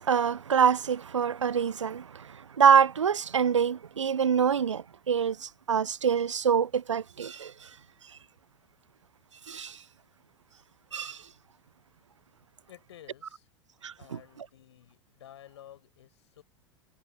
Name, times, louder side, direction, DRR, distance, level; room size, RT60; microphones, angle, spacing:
voice 1, 0.0-7.7 9.5-9.8 10.9-11.2 13.8-14.2, right 7 dB, 80° right, 0.5 m, -25 dB
voice 2, 12.7-13.5 14.0-16.4, left 11 dB, 70° left, 5.0 m, -52 dB
figure-of-eight pair, 85°, 15 cm